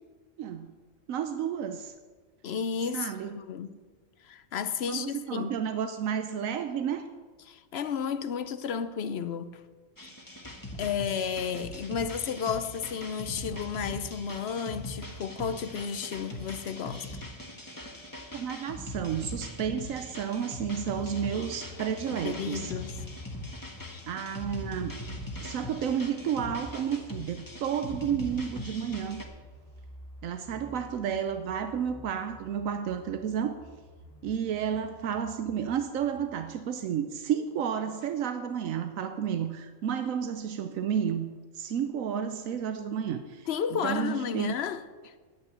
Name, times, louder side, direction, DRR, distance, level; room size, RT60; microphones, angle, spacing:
voice 1, 0.4-0.7 1.1-1.9 2.9-3.4 4.9-7.1 18.3-22.7 24.1-25.0 25.4-29.2 30.2-33.5 34.2-44.5, right 8 dB, 85° right, 1.1 m, -31 dB
voice 2, 2.4-3.1 3.5-3.7 4.2-5.6 7.5-9.6 10.8-17.1 22.1-23.0 43.5-45.1, left 7 dB, 60° left, 0.8 m, -32 dB
sound 1, 10.0-29.2, left 1 dB, 15° left, 1.3 m, -41 dB
sound 2, 20.8-36.5, left 2 dB, 85° left, 2.0 m, -50 dB
10.0 x 9.0 x 8.0 m
omnidirectional pair, 1.4 m